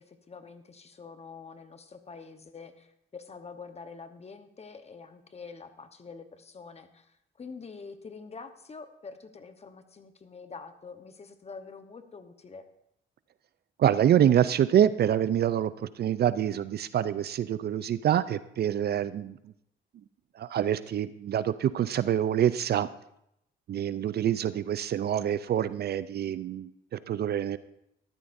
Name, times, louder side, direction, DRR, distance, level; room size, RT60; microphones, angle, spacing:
voice 1, 0.0-12.7, left 4 dB, 30° left, 9 dB, 1.0 m, -46 dB
voice 2, 13.8-19.4 20.4-22.9 23.7-27.6, right 10 dB, 55° right, 15 dB, 0.5 m, -26 dB
14.0 x 12.0 x 2.6 m, 0.78 s
cardioid pair, 90°, 20 cm